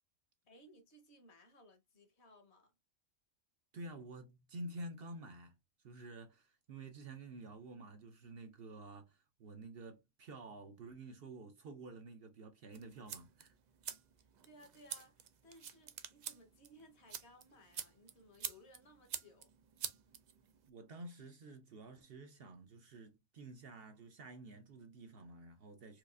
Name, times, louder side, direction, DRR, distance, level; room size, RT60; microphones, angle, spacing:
voice 1, 0.4-2.7 14.2-19.5, left 1 dB, 60° left, 1.2 m, -62 dB
voice 2, 3.7-5.5 5.8-13.5 20.7-26.0, right 2 dB, 55° right, 0.8 m, -50 dB
sound 1, 12.7-20.7, right 8 dB, 75° right, 0.4 m, -48 dB
4.7 x 2.4 x 2.4 m
omnidirectional pair, 1.3 m